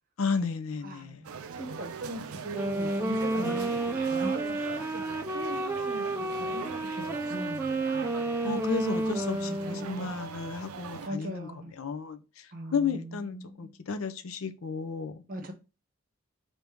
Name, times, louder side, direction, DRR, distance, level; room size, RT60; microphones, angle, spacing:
voice 1, 0.2-1.2 3.4-3.6 8.4-15.2, left 5 dB, 70° left, 0.5 m, -33 dB
voice 2, 0.8-7.8 9.2-9.9 10.8-11.7 12.5-13.7 15.3-15.5, right 1 dB, 40° right, 0.8 m, -40 dB
sound 1, 1.2-11.1, right 6 dB, 80° right, 0.5 m, -42 dB
Wind instrument woodwind instrument, 2.4-10.1, right 2 dB, 10° right, 0.3 m, -31 dB
3.4 x 2.7 x 4.5 m
head